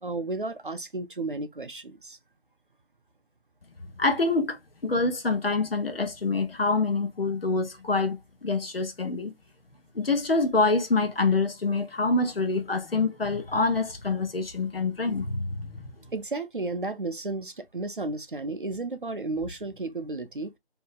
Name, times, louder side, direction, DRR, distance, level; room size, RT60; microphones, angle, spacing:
voice 1, 0.0-2.2 16.1-20.5, right 3 dB, 50° right, 0.6 m, -33 dB
voice 2, 3.8-9.3 9.9-15.9, left 3 dB, 60° left, 1.0 m, -26 dB
3.8 x 2.8 x 2.4 m
figure-of-eight pair, 175°, 33 cm